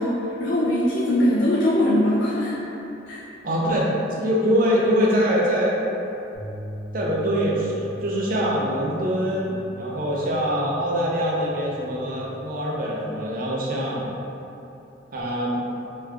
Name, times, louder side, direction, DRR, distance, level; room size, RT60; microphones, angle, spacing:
voice 1, 0.0-2.5 3.1-3.2, left 1 dB, 75° left, -6 dB, 0.4 m, -21 dB
voice 2, 3.4-5.8 6.9-14.1 15.1-15.6, equal, 50° right, -4 dB, 0.5 m, -23 dB
sound 1, 6.3-12.6, right 1 dB, 5° left, 1.1 m, -40 dB
3.0 x 2.4 x 3.3 m, 2.9 s
head